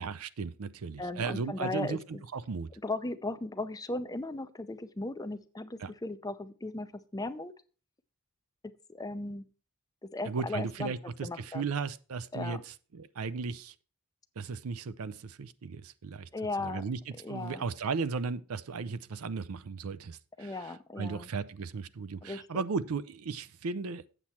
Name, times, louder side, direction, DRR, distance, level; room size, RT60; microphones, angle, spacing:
voice 1, 0.0-2.7 5.8-5.9 10.2-13.7 14.4-16.3 16.6-17.0 17.3-24.0, right 5 dB, 70° right, 0.5 m, -36 dB
voice 2, 1.0-2.0 2.8-7.5 8.9-9.4 10.0-11.0 11.2-11.7 12.3-12.6 16.3-16.8 17.2-17.7 20.4-21.3 22.2-22.6, left 2 dB, 15° left, 0.5 m, -37 dB
8.1 x 7.2 x 4.2 m
head